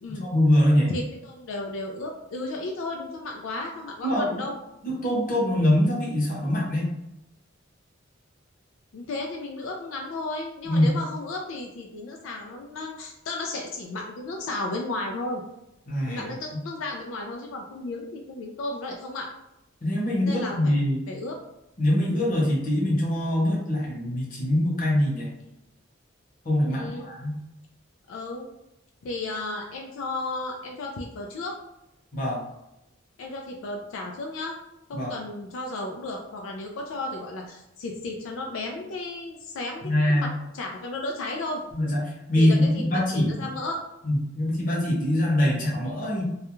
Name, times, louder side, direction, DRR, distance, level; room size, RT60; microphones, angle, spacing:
voice 1, 0.1-0.9 4.0-4.4 4.8-6.9 10.6-10.9 15.9-16.2 16.5-16.6 19.8-21.0 21.8-25.3 26.4-27.4 32.1-32.4 34.9-35.1 39.8-40.3 41.7-43.5 44.0-46.2, left 1 dB, 45° left, -4 dB, 0.8 m, -23 dB
voice 2, 0.9-4.6 8.9-15.4 16.1-19.3 20.2-20.8 21.1-21.4 26.7-27.1 28.1-28.5 29.0-31.6 33.2-34.6 34.9-41.6 42.4-43.8, left 2 dB, 85° left, 1 dB, 0.4 m, -34 dB
2.3 x 2.2 x 2.9 m, 0.89 s
head